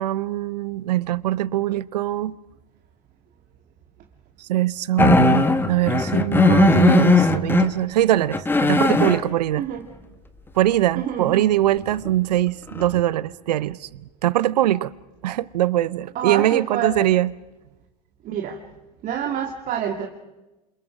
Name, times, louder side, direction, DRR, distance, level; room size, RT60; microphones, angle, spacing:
voice 1, 0.0-2.4 4.4-9.6 10.6-13.9 14.2-14.9 15.2-17.3, right 13 dB, 80° right, 0.8 m, -22 dB
sound 1, 5.0-7.7 8.2-9.2 12.1-12.2 12.7-13.0, left 3 dB, 10° left, 1.7 m, -17 dB
voice 2, 9.6-9.9 11.0-11.5 16.1-17.1 18.2-18.6 19.0-20.1, right 8 dB, 40° right, 2.3 m, -27 dB
28.5 x 27.5 x 5.0 m
hypercardioid pair, 100°, 21 cm